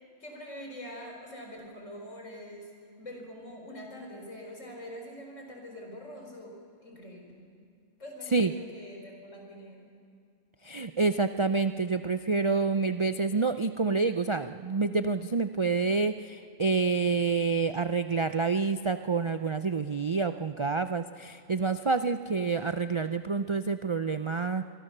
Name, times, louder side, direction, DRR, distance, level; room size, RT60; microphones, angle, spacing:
voice 1, 0.0-2.7 3.0-6.6 6.8-7.5 8.0-9.9, equal, 70° left, 1 dB, 4.9 m, -44 dB
voice 2, 10.6-24.6, right 4 dB, 55° right, 10 dB, 0.3 m, -28 dB
26.0 x 22.5 x 6.7 m, 2.3 s
omnidirectional pair, 1.3 m